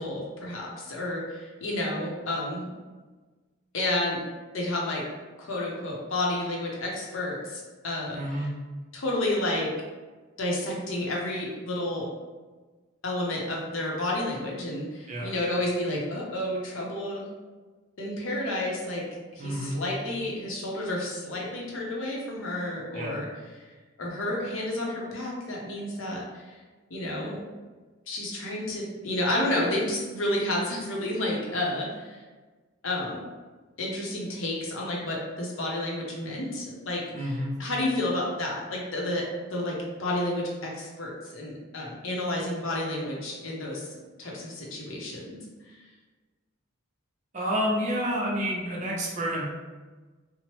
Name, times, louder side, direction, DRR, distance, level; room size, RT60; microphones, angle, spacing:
voice 1, 0.0-2.7 3.7-4.2 4.5-5.1 5.4-8.5 8.9-9.7 10.4-12.1 13.0-17.3 18.0-19.0 19.3-23.6 24.0-26.6 26.9-27.4 28.1-32.2 32.8-33.2 33.8-43.9 44.2-45.4 45.7-45.8, left 1 dB, 70° left, -2 dB, 0.7 m, -31 dB
voice 2, 8.1-8.5 15.1-15.3 19.4-19.8 22.9-23.2 37.1-37.6 47.3-49.4, equal, 35° right, -4 dB, 0.5 m, -29 dB
3.0 x 2.0 x 2.9 m, 1.3 s
head